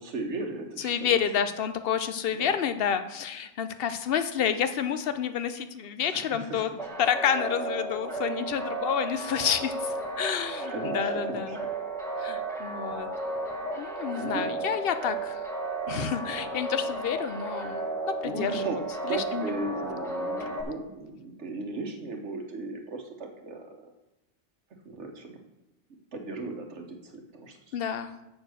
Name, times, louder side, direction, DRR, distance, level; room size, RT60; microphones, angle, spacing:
voice 1, 0.0-1.1 2.3-2.5 6.1-6.8 10.7-11.6 13.7-13.9 14.2-14.6 18.2-18.8 19.1-23.9 24.8-25.4 26.1-27.8, right 2 dB, 80° right, 3 dB, 1.5 m, -37 dB
voice 2, 0.8-6.7 7.0-11.6 12.2-13.1 13.8-15.5 15.9-17.8 18.0-18.7 19.1-19.4 27.7-28.1, left 8 dB, 60° left, 10 dB, 0.8 m, -29 dB
sound 1, 6.8-20.6, right 2 dB, 5° left, 1.4 m, -34 dB
7.2 x 6.6 x 6.3 m, 0.96 s
omnidirectional pair, 1.2 m